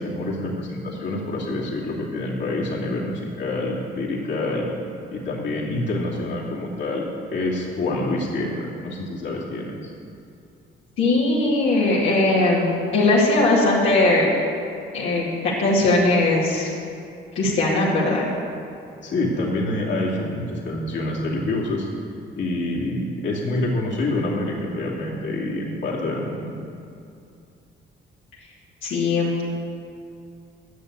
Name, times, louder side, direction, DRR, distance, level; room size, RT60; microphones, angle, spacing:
voice 1, 0.0-4.7 5.1-9.9 19.0-21.9 22.4-26.5, left 2 dB, 65° left, -4 dB, 2.7 m, -27 dB
voice 2, 11.0-12.7 12.9-14.3 14.9-16.7 17.3-18.3 28.8-29.4, left 2 dB, 80° left, -6 dB, 2.3 m, -19 dB
11.0 x 6.9 x 8.2 m, 2.6 s
cardioid pair, 90°, 20 cm